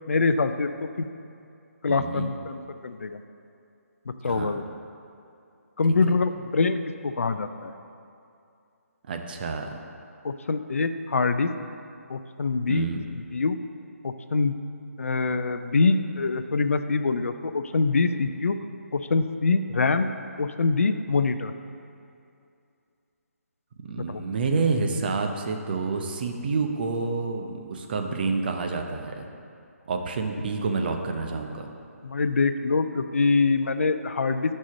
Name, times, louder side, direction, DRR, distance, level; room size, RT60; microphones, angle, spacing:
voice 1, 0.1-1.1 1.8-3.2 4.2-4.6 5.8-7.7 10.2-11.5 12.1-12.9 13.1-13.6 14.0-14.6 15.0-18.6 18.9-20.1 20.4-21.5 24.1-24.2 32.0-34.5, left 4 dB, 60° left, 10 dB, 0.4 m, -24 dB
voice 2, 1.9-2.3 4.2-4.6 9.1-9.8 12.7-13.0 23.8-29.3 29.9-31.7, right 4 dB, 35° right, 4 dB, 0.7 m, -28 dB
6.2 x 5.5 x 7.1 m, 2.5 s
figure-of-eight pair, 145°, 8 cm